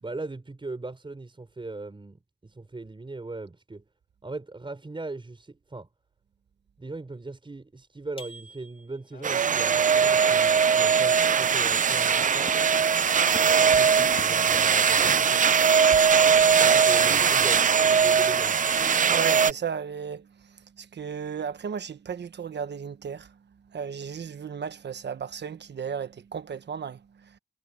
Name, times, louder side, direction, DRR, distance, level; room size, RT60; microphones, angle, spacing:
voice 1, 0.0-3.8 4.2-5.9 6.8-12.5 13.4-15.4 16.5-18.6, right 3 dB, 25° right, 5.2 m, -39 dB
sound 1, 8.2-9.3, equal, 30° left, 2.5 m, -47 dB
sound 2, 9.1-10.5 10.8-11.5 12.5-13.0 13.3-14.9, left 5 dB, 55° left, 3.6 m, -47 dB
sound 3, 9.2-19.5, right 6 dB, 45° right, 0.5 m, -20 dB
voice 2, 16.5-16.9 19.1-23.3 23.7-27.4, right 7 dB, 70° right, 1.2 m, -35 dB
wide cardioid pair, 115°, 18 cm